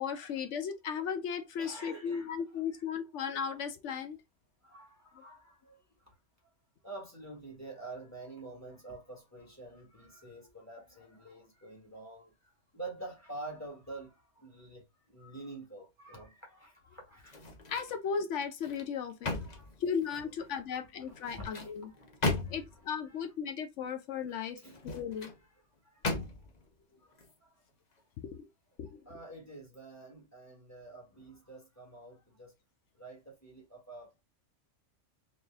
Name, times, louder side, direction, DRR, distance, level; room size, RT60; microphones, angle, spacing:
voice 1, 0.0-4.2 5.1-5.2 17.7-19.4 19.8-21.9 22.5-24.6 24.8-25.3 28.2-28.5 28.8-29.2, left 7 dB, 75° left, 1.0 m, -36 dB
voice 2, 1.6-2.3 2.7-2.8 4.6-6.1 6.8-17.4 19.3-19.7 21.0-22.6 23.0-23.2 24.6-24.8 25.2-25.3 25.8-26.3 26.9-27.1 27.4-27.6 29.0-32.5 33.0-34.2, right 2 dB, 15° left, 1.5 m, -48 dB
sound 1, 17.2-18.0 18.4-20.4 21.1-22.9 24.6-25.4 26.0-26.6 27.1-27.3, left 3 dB, 40° left, 0.8 m, -37 dB
4.0 x 2.5 x 3.4 m
omnidirectional pair, 1.3 m